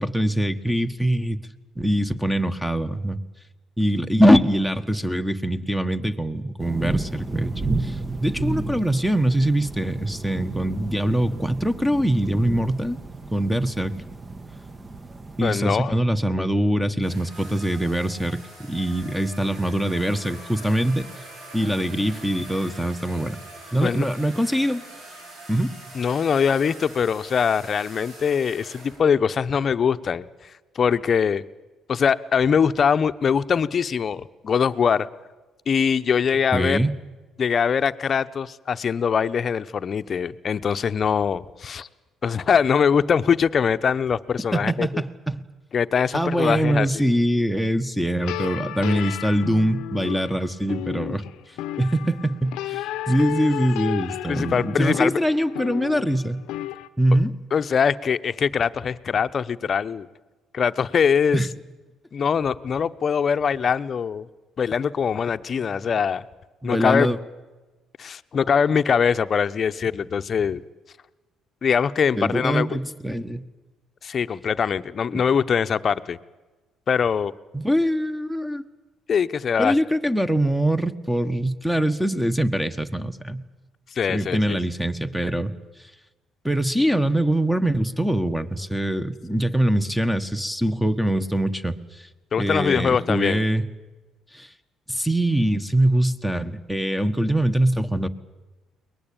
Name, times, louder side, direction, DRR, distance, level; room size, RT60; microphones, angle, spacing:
voice 1, 0.0-1.4 1.7-3.2 3.8-7.5 7.8-13.0 13.3-13.9 15.4-21.1 21.5-23.4 23.7-24.8 25.5-25.7 36.5-36.9 44.5-45.4 46.1-51.2 51.8-56.4 57.0-57.3 61.3-61.5 66.6-67.2 72.2-73.4 75.1-75.2 77.5-78.6 79.6-83.4 84.1-85.5 86.4-92.1 92.3-93.7 94.3-94.5 94.9-98.1, right 1 dB, ahead, 10 dB, 1.4 m, -23 dB
sound 1, 6.6-15.5, right 3 dB, 25° right, 1.3 m, -32 dB
voice 2, 15.4-15.9 23.8-24.1 25.9-30.2 30.7-31.4 31.9-35.1 35.7-36.8 37.4-41.9 42.2-44.9 45.7-47.1 54.3-55.2 57.5-60.1 60.5-61.4 62.1-64.3 64.6-66.2 66.6-67.1 68.0-70.6 71.6-72.8 74.0-76.2 76.9-77.3 79.1-79.7 83.9-84.6 92.3-93.4, left 7 dB, 45° left, 12 dB, 0.8 m, -22 dB
sound 2, 17.0-29.0, right 1 dB, 75° right, 7.5 m, -43 dB
sound 3, 48.2-56.9, left 14 dB, 80° left, 0.8 m, -33 dB
22.5 x 19.5 x 8.8 m, 1.2 s
supercardioid pair, 80°, 0 cm